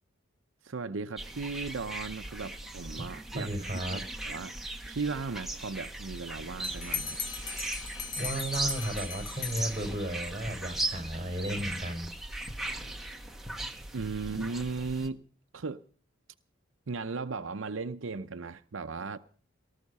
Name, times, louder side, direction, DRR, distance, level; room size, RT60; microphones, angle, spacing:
voice 1, 0.6-3.5 3.9-4.6 4.9-7.2 12.6-12.9 13.9-15.2 15.5-15.8 16.9-19.2, right 4 dB, 80° right, 0.7 m, -36 dB
sound 1, 1.2-15.1, right 2 dB, ahead, 1.3 m, -38 dB
voice 2, 3.3-4.0 8.2-12.1, right 1 dB, 25° right, 4.8 m, -34 dB
Bell, 6.6-10.3, left 5 dB, 65° left, 3.4 m, -38 dB
19.0 x 13.0 x 5.5 m
head